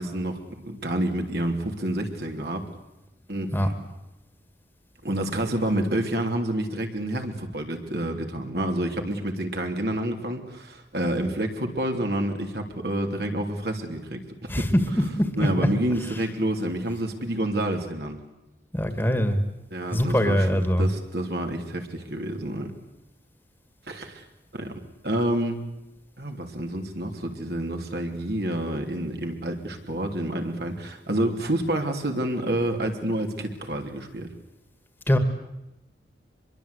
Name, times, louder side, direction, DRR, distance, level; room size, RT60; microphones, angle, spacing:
voice 1, 0.0-2.7 3.3-3.7 5.0-14.2 14.6-14.7 15.4-18.2 19.7-22.7 23.9-24.2 24.5-24.7 25.0-25.6 26.2-34.3, right 1 dB, 65° right, 3 dB, 3.2 m, -28 dB
voice 2, 14.5-14.8 15.2-15.5 18.7-19.4 19.9-20.9 35.1-35.2, equal, 10° left, 8 dB, 1.9 m, -22 dB
25.0 x 22.5 x 8.3 m, 0.91 s
head